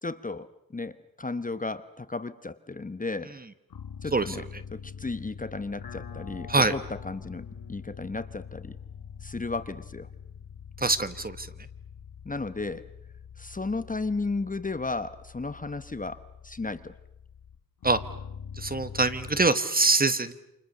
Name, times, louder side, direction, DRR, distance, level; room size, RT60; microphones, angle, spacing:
voice 1, 0.0-3.3 4.0-4.4 4.7-8.8 9.2-10.1 12.2-12.8 13.4-16.9, left 3 dB, 25° left, 12 dB, 1.0 m, -34 dB
sound 1, 3.7-19.5, left 7 dB, 80° left, 1.5 m, -44 dB
voice 2, 10.8-11.5 17.8-18.0 18.6-20.3, right 3 dB, 25° right, 12 dB, 1.3 m, -24 dB
29.5 x 28.0 x 6.7 m, 0.85 s
wide cardioid pair, 155°, 35 cm